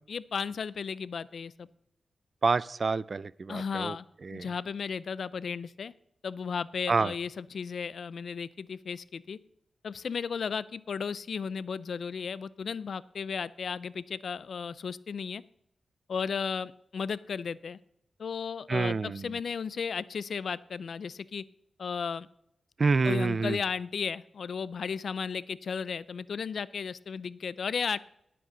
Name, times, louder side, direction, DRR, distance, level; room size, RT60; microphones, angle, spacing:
voice 1, 0.1-1.7 3.5-4.1 4.3-5.9 6.2-9.4 9.8-15.4 16.1-17.8 18.2-21.4 21.8-22.3 23.0-28.0, left 6 dB, 75° left, 19 dB, 0.4 m, -34 dB
voice 2, 2.4-4.0 4.2-4.5 6.9-7.1 18.7-19.3 22.8-23.6, right 4 dB, 55° right, 21 dB, 0.4 m, -27 dB
18.5 x 7.7 x 3.9 m, 0.77 s
cardioid pair, 45°, 0 cm